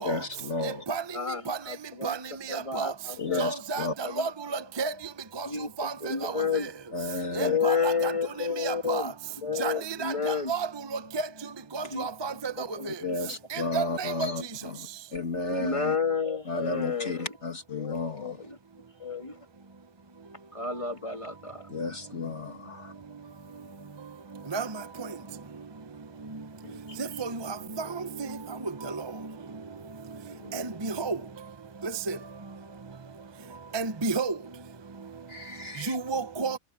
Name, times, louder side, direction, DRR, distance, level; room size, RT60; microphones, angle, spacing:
voice 1, 0.0-0.8 3.2-3.9 6.9-7.6 13.0-16.0 16.5-18.4 21.7-22.9 35.3-36.0, left 3 dB, 55° left, 2.5 m, -33 dB
voice 2, 1.1-2.1 2.5-3.4 4.0-4.3 5.4-6.7 7.4-9.1 9.4-10.5 11.9-12.1 12.6-12.9 14.4-14.5 15.4-17.3 17.8-18.6 19.0-19.4 20.5-21.7 26.6-27.0 30.2-31.1, left 5 dB, 20° left, 2.2 m, -31 dB
voice 3, 2.5-2.9 3.4-4.9 5.4-5.5 5.8-6.6 7.4-8.1 8.6-9.1 9.6-10.7 11.1-11.2 11.7-12.7 13.5-14.3 24.5-24.7 27.0-28.3 28.8-29.0 30.5-31.2 31.8-32.2 33.7-34.3 35.9-36.6, right 4 dB, 25° right, 0.7 m, -31 dB
omnidirectional pair, 1.5 m